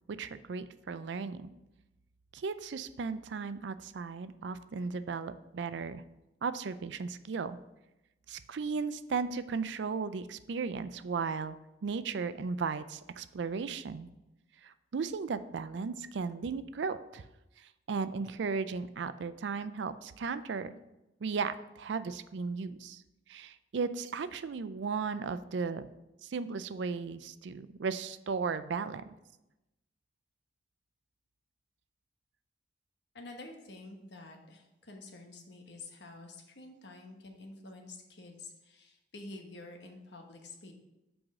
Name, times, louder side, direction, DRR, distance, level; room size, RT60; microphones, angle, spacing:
voice 1, 0.2-1.5 2.3-6.0 6.4-7.6 8.3-11.6 11.8-14.1 14.6-17.2 17.9-20.7 21.2-23.0 23.3-25.9 26.2-29.0, right 5 dB, 75° right, 13 dB, 0.4 m, -35 dB
voice 2, 33.1-40.7, left 2 dB, 70° left, 3 dB, 1.2 m, -49 dB
6.2 x 4.8 x 6.2 m, 0.95 s
head